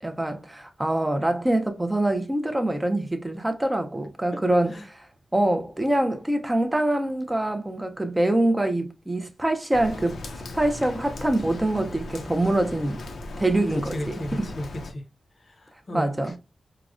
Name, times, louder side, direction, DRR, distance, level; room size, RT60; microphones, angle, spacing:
voice 1, 0.0-5.1 5.3-13.0 13.4-14.5 15.9-16.3, right 1 dB, 10° right, 0.4 m, -25 dB
Rain, 9.7-14.9, left 2 dB, 90° left, 0.6 m, -38 dB
voice 2, 13.7-15.0 15.4-16.4, left 1 dB, 40° left, 0.6 m, -34 dB
4.7 x 2.0 x 2.3 m
wide cardioid pair, 160°, 0 cm